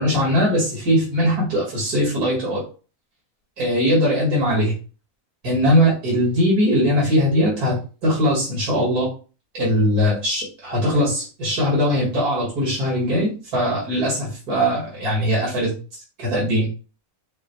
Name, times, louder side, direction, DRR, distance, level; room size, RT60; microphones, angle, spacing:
voice 1, 0.0-2.6 3.6-4.7 5.4-9.1 9.5-15.7 16.2-16.7, equal, 85° right, -5 dB, 2.5 m, -20 dB
6.2 x 2.2 x 3.1 m, 0.34 s
omnidirectional pair, 1.6 m